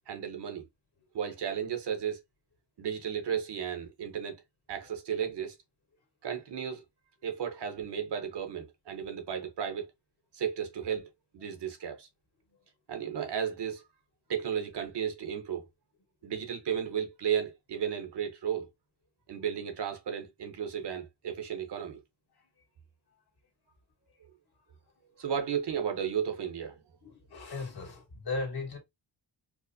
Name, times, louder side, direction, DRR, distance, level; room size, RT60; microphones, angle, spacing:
voice 1, 0.1-0.7 1.1-2.2 2.8-4.4 4.7-5.6 6.2-6.8 7.2-9.9 10.3-11.1 11.3-12.1 12.9-13.8 14.3-15.6 16.2-18.7 19.3-22.0 25.2-26.8, right 8 dB, 70° right, 1.0 m, -34 dB
voice 2, 27.0-28.8, left 3 dB, 60° left, 1.6 m, -37 dB
4.6 x 2.1 x 2.7 m
wide cardioid pair, 115°, 43 cm